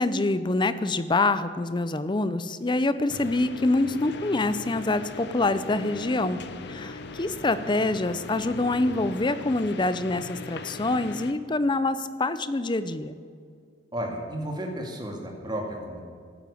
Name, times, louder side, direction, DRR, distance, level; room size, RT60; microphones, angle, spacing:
voice 1, 0.0-6.4 6.7-13.2, left 2 dB, 25° left, 13 dB, 0.6 m, -26 dB
sound 1, 3.1-11.3, left 3 dB, 60° left, 0.9 m, -39 dB
voice 2, 13.9-16.0, right 1 dB, 25° right, 1 dB, 2.3 m, -33 dB
13.5 x 9.3 x 8.5 m, 2.2 s
head